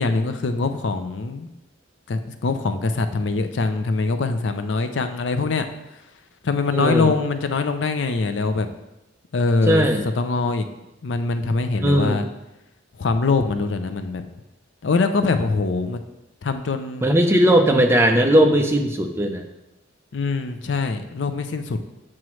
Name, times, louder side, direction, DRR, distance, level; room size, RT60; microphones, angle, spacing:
voice 1, 0.0-1.5 2.1-5.7 6.4-8.7 9.3-9.8 10.2-10.7 11.0-12.2 13.0-14.2 14.8-16.0 16.4-17.1 20.1-21.8, left 3 dB, 70° left, 8 dB, 0.5 m, -23 dB
voice 2, 6.7-7.1 9.7-10.0 11.8-12.2 17.0-19.4, right 1 dB, 15° right, 4 dB, 0.5 m, -18 dB
7.6 x 6.0 x 3.1 m, 0.93 s
head